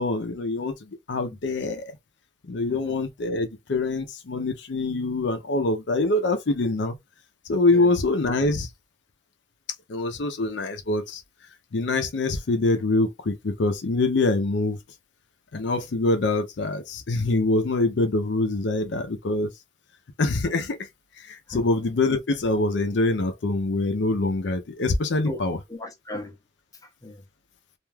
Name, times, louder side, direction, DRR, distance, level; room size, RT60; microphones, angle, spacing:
voice 1, 0.0-1.9 2.5-7.0 7.5-8.7 9.9-11.2 11.7-14.8 15.5-19.5 20.2-20.8 21.2-25.6, left 2 dB, 75° left, 0.5 m, -24 dB
voice 2, 2.7-3.0 7.7-7.9 21.5-21.7 25.3-25.4 25.7-26.4 26.8-27.2, left 1 dB, 20° left, 0.6 m, -37 dB
2.4 x 2.2 x 3.2 m
head